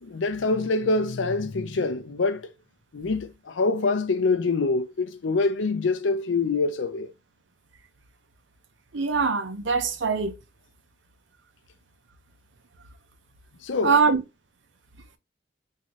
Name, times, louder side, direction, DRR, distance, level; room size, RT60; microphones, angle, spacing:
voice 1, 0.0-2.4 2.9-7.1 13.6-14.0, left 3 dB, 85° left, 0.5 m, -25 dB
voice 2, 8.9-10.3 13.8-14.2, right 5 dB, 80° right, 0.8 m, -22 dB
3.7 x 2.7 x 3.1 m
head